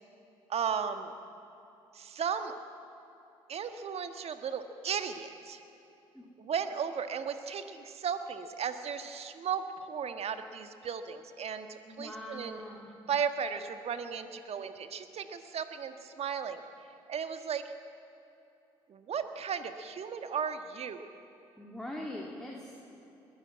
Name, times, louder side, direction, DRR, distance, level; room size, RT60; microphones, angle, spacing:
voice 1, 0.5-1.1 1.9-2.5 3.5-5.6 6.4-12.6 13.1-16.6 17.1-17.7 18.9-21.0, right 7 dB, 55° right, 8 dB, 1.5 m, -35 dB
voice 2, 11.9-12.9 21.6-22.7, left 1 dB, 5° left, -3 dB, 3.3 m, -42 dB
21.5 x 14.5 x 8.9 m, 2.9 s
hypercardioid pair, 50°, 13 cm